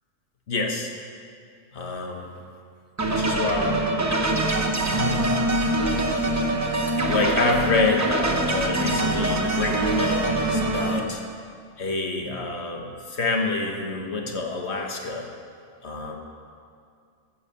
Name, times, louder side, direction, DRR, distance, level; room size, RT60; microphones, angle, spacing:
voice 1, 0.5-0.9 1.7-2.3 3.0-3.9 4.8-5.5 7.1-11.2 11.8-15.3 15.8-16.2, left 3 dB, 55° left, 1 dB, 1.6 m, -27 dB
sound 1, 3.0-11.0, right 1 dB, 15° right, 0.7 m, -24 dB
15.0 x 5.7 x 6.9 m, 2.3 s
omnidirectional pair, 1.4 m